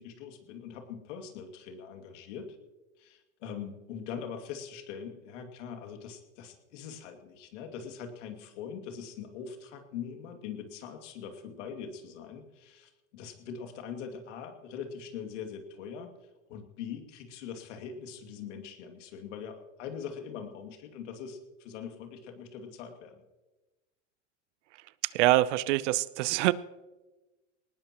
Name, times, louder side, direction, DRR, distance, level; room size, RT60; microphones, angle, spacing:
voice 1, 0.0-2.6 3.0-16.1 16.5-23.2, left 7 dB, 80° left, 5 dB, 2.5 m, -42 dB
voice 2, 25.0-26.5, right 16 dB, 75° right, 18 dB, 0.8 m, -25 dB
20.0 x 19.0 x 3.0 m, 1.1 s
supercardioid pair, 115°, 36 cm